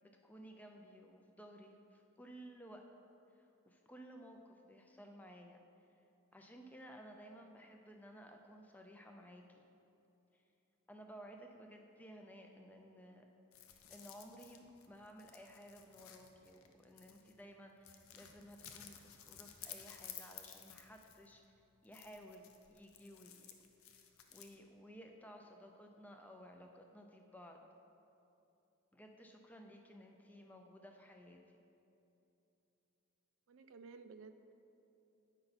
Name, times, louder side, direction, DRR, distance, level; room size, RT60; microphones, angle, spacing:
voice 1, 0.2-2.9 3.3-5.6 6.3-9.7 10.3-10.4 10.9-13.3 13.9-21.4 21.8-23.5 23.9-27.6 28.9-31.6, equal, 5° left, 3 dB, 0.4 m, -56 dB
sound 1, 13.5-17.4 17.8-21.4 21.8-24.6, left 9 dB, 80° left, 0.6 m, -55 dB
voice 2, 33.5-34.5, right 4 dB, 65° right, 9 dB, 0.4 m, -55 dB
8.7 x 5.6 x 4.0 m, 2.9 s
head